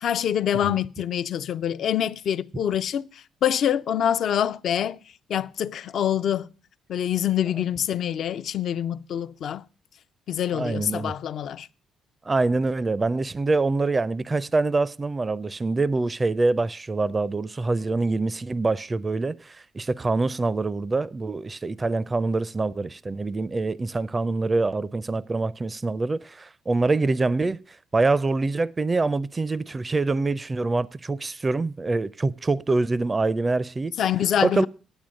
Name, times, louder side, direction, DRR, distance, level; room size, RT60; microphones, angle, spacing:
voice 1, 0.0-3.1 3.4-5.0 5.3-6.5 6.9-9.6 10.3-11.7 34.0-34.7, left 10 dB, 65° left, 0.4 m, -25 dB
voice 2, 10.5-11.1 12.3-27.6 27.9-33.9 34.4-34.7, right 3 dB, 30° right, 0.4 m, -25 dB
9.0 x 8.4 x 6.3 m
supercardioid pair, 70°, 0 cm